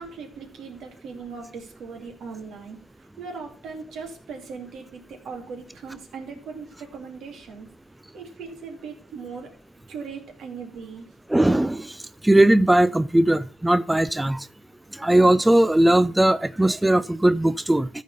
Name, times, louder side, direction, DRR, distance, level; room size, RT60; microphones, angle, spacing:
voice 1, 0.0-7.7 8.1-9.5 9.9-11.1, right 5 dB, 70° right, 2.7 m, -39 dB
voice 2, 11.3-11.9 12.2-14.5 15.0-17.9, right 1 dB, 10° right, 0.4 m, -19 dB
13.5 x 4.6 x 5.5 m
cardioid pair, 90°, 0 cm